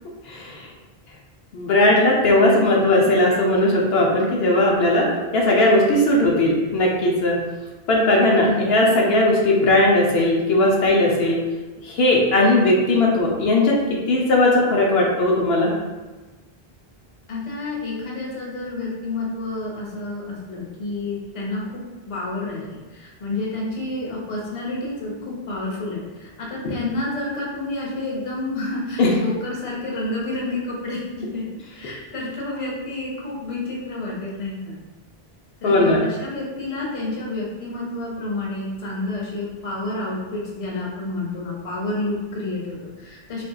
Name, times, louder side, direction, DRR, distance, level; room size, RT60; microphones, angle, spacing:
voice 1, 0.3-0.7 1.5-5.1 5.3-7.4 7.9-11.4 11.8-13.7 14.1-15.7 26.6-26.7 29.0-29.1 35.6-36.0, left 1 dB, 75° left, -2 dB, 0.9 m, -18 dB
voice 2, 8.4-8.7 17.3-21.8 22.1-31.4 31.8-34.8 35.6-43.4, left 2 dB, 35° left, -4 dB, 0.7 m, -29 dB
3.7 x 2.6 x 2.3 m, 1.2 s
omnidirectional pair, 1.1 m